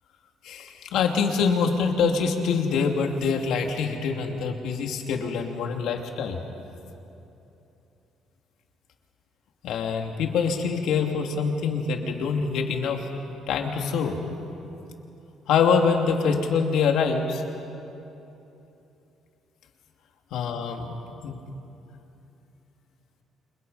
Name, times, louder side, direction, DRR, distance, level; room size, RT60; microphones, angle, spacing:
voice 1, 0.4-6.4 9.6-13.1 13.5-14.2 15.5-17.4 20.3-20.9 21.2-21.4, left 5 dB, 75° left, 3 dB, 2.7 m, -25 dB
29.5 x 27.5 x 5.7 m, 2.9 s
cardioid pair, 130°, 0 cm